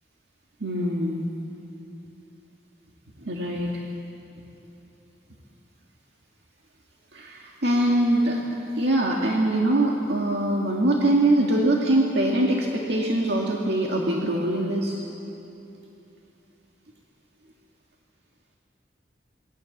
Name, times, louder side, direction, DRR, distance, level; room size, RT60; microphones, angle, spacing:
voice 1, 0.6-1.3 3.2-3.7 7.1-8.4 8.8-15.0, right 1 dB, 75° right, -1 dB, 2.0 m, -23 dB
26.5 x 20.5 x 7.3 m, 2.9 s
head